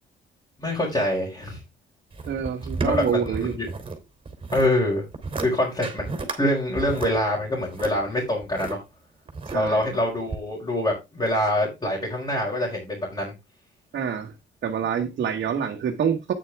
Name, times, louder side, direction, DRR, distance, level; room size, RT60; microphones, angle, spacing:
voice 1, 0.6-1.6 2.9-3.7 4.5-5.0 5.4-8.8 9.5-13.3, left 1 dB, 20° left, 4.9 m, -25 dB
sound 1, 2.1-4.0 4.3-4.7 5.1-5.5 5.8-6.4 6.8-8.7 9.3-9.9 10.3-10.4, right 3 dB, 25° right, 3.1 m, -32 dB
voice 2, 2.3-3.6 9.5-9.8 13.9-14.3 14.6-16.3, right 7 dB, 60° right, 1.5 m, -26 dB
9.3 x 8.2 x 3.5 m
cardioid pair, 90°, 20 cm